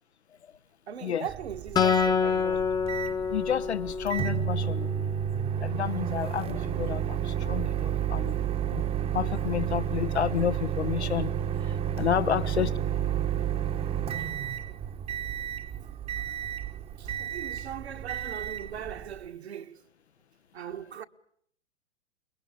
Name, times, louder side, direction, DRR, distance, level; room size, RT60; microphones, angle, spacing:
voice 1, 0.9-2.7 12.3-12.4 14.2-14.3 14.7-14.8 15.7-15.9 17.0-19.8 20.5-21.1, right 9 dB, 65° right, 1.7 m, -39 dB
Microwave oven, 1.3-19.2, right 9 dB, 15° right, 1.1 m, -31 dB
Acoustic guitar, 1.8-5.2, left 6 dB, 10° left, 1.1 m, -27 dB
voice 2, 3.3-5.1 5.6-8.4 8.7-8.9 9.1-11.3 11.6-12.7, left 9 dB, 70° left, 1.2 m, -30 dB
29.0 x 22.0 x 8.6 m
figure-of-eight pair, 110°, 34 cm